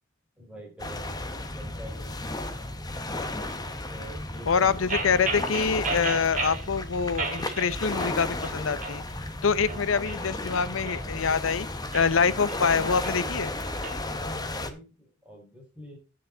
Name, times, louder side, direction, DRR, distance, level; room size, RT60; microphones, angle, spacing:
voice 1, 0.4-2.7 3.9-5.2 9.6-9.9 14.0-16.0, equal, 5° right, 4.7 m, -46 dB
sound 1, 0.8-14.7, left 2 dB, 20° left, 1.1 m, -34 dB
voice 2, 4.5-9.0 9.4-11.7 11.9-13.5, left 5 dB, 85° left, 0.7 m, -25 dB
sound 2, 4.9-6.7 7.2-8.2 8.4-9.0 9.5-11.3 11.8-14.0, right 3 dB, 40° right, 2.3 m, -34 dB
9.5 x 9.3 x 3.9 m
head